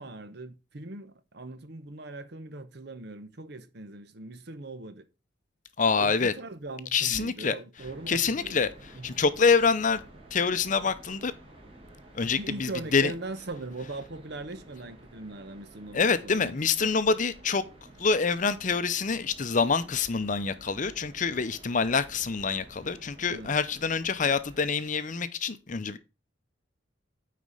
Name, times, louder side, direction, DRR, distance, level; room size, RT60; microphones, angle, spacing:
voice 1, 0.0-5.1 6.0-8.6 8.9-9.2 12.4-16.5 16.8-16.9 23.3-23.6, right 2 dB, 60° right, 0.9 m, -40 dB
voice 2, 5.8-6.3 6.9-7.5 8.1-8.7 9.0-10.0 10.3-11.3 12.1-13.1 15.9-17.6 18.0-26.0, left 5 dB, 40° left, 0.6 m, -26 dB
sound 1, 7.8-24.7, right 1 dB, 30° right, 2.2 m, -52 dB
9.4 x 4.2 x 4.9 m
head